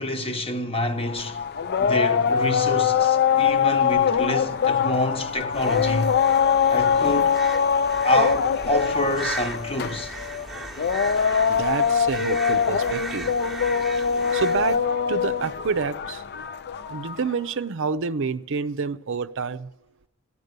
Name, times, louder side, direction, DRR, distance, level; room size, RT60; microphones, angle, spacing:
voice 1, 0.0-1.4 1.8-6.1 6.7-7.3 8.0-10.1, left 1 dB, 25° left, 1.0 m, -27 dB
sound 1, 1.0-17.3, left 7 dB, 50° left, 0.4 m, -23 dB
sound 2, 5.5-14.8, right 2 dB, ahead, 1.0 m, -36 dB
voice 2, 11.5-13.3 14.3-16.4 16.9-19.7, right 5 dB, 60° right, 0.6 m, -28 dB
15.0 x 11.0 x 6.7 m
head